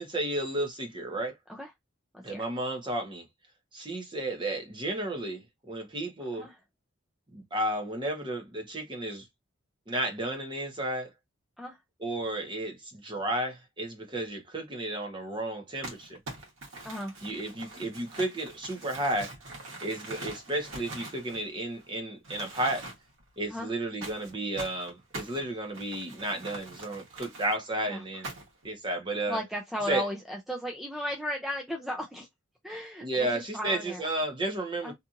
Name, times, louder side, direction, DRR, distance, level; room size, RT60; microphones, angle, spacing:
voice 1, 0.0-1.4 2.2-3.2 3.7-6.5 7.3-9.3 9.9-11.1 12.0-16.2 17.2-19.3 19.8-22.9 23.4-28.3 28.6-29.4 29.9-30.0 33.0-34.9, right 1 dB, 25° right, 0.9 m, -32 dB
Crumpling crinkling, 15.8-21.9 22.2-23.2 24.0-27.5 28.2-28.7, right 2 dB, 80° right, 1.2 m, -43 dB
voice 2, 29.3-32.3 32.6-34.0 34.8-34.9, left 1 dB, ahead, 0.4 m, -35 dB
2.8 x 2.5 x 2.4 m
head